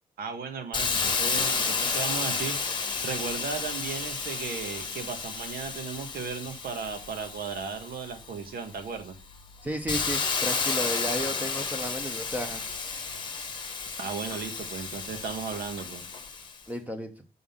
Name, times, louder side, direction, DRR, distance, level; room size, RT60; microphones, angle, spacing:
voice 1, 0.2-2.6 3.0-9.2 14.0-16.0, right 5 dB, 75° right, 6 dB, 1.5 m, -35 dB
Hiss, 0.7-8.3 8.8-16.6, left 5 dB, 30° left, 1.1 m, -32 dB
voice 2, 9.6-12.6 16.7-17.1, equal, 10° right, 5 dB, 1.0 m, -33 dB
6.3 x 5.6 x 5.6 m, 0.32 s
wide cardioid pair, 175°, 16 cm